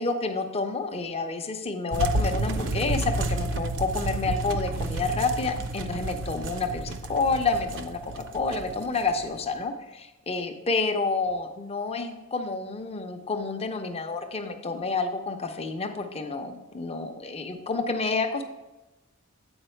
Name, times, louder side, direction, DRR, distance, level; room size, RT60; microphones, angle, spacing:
voice 1, 0.0-18.5, left 3 dB, 25° left, 6 dB, 0.6 m, -29 dB
sound 1, 1.9-9.5, right 2 dB, 55° right, 0.5 m, -31 dB
7.9 x 4.8 x 4.4 m, 1.1 s
head